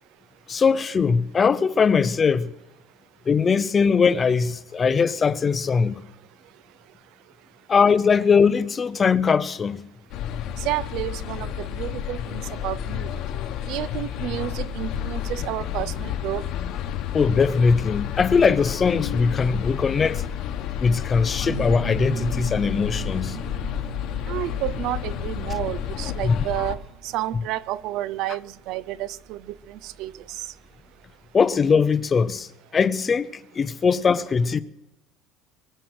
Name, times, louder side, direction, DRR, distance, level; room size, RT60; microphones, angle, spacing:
voice 1, 0.5-2.5 3.3-6.0 7.7-9.8 17.1-20.2 20.8-23.4 26.2-26.5 31.3-34.6, left 5 dB, 20° left, 0.5 m, -21 dB
sound 1, 10.1-26.7, left 10 dB, 50° left, 1.1 m, -30 dB
voice 2, 10.6-13.1 13.7-16.5 24.3-30.4, right 14 dB, 55° right, 0.5 m, -31 dB
sound 2, 21.4-30.8, right 10 dB, 35° right, 1.6 m, -38 dB
23.0 x 7.8 x 6.2 m
cardioid pair, 170°, 0 cm